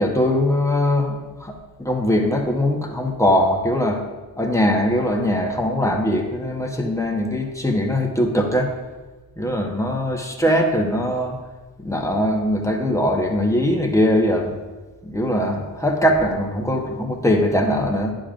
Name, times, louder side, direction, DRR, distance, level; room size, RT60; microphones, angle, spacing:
voice 1, 0.0-4.0 4.4-8.7 9.4-11.4 11.8-14.5 15.0-18.1, left 1 dB, 5° left, 2 dB, 1.1 m, -21 dB
10.0 x 5.1 x 2.5 m, 1.3 s
supercardioid pair, 45°, 49 cm